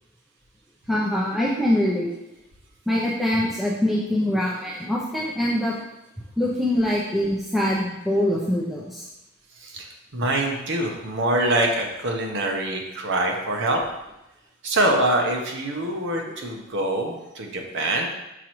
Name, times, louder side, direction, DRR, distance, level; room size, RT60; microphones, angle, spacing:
voice 1, 0.9-2.2 2.9-5.8 6.4-9.0 16.4-16.5, left 1 dB, ahead, -5 dB, 0.6 m, -24 dB
voice 2, 9.6-13.8 14.6-18.1, right 1 dB, 60° right, 1 dB, 0.9 m, -24 dB
6.0 x 5.2 x 3.0 m, 0.91 s
head